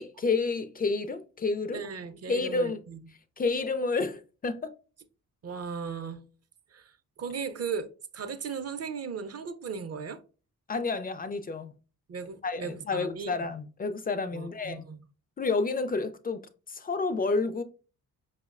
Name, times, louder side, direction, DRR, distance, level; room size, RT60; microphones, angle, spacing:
voice 1, 0.0-1.8 2.3-2.8 3.4-4.7 10.7-11.7 12.4-14.9 15.4-17.6, left 3 dB, 25° left, 0.3 m, -30 dB
voice 2, 1.7-3.0 5.4-6.2 6.7-7.9 8.1-10.2 12.1-13.3 14.3-15.0, right 6 dB, 40° right, 0.5 m, -37 dB
5.0 x 2.1 x 2.3 m
supercardioid pair, 50°, 39 cm